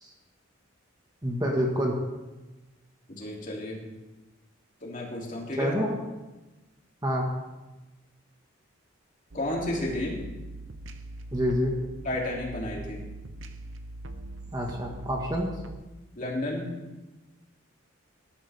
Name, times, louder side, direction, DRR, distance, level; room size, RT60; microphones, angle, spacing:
voice 1, 1.2-2.0 5.6-5.9 7.0-7.3 11.3-11.7 14.5-15.5, equal, 20° right, -1 dB, 1.7 m, -27 dB
voice 2, 3.1-3.8 4.8-5.8 9.3-10.2 12.0-13.0 16.1-16.7, left 1 dB, 40° left, -2 dB, 3.1 m, -32 dB
sound 1, 9.3-15.8, right 1 dB, 70° right, 0.9 m, -42 dB
18.5 x 12.5 x 3.6 m, 1.1 s
head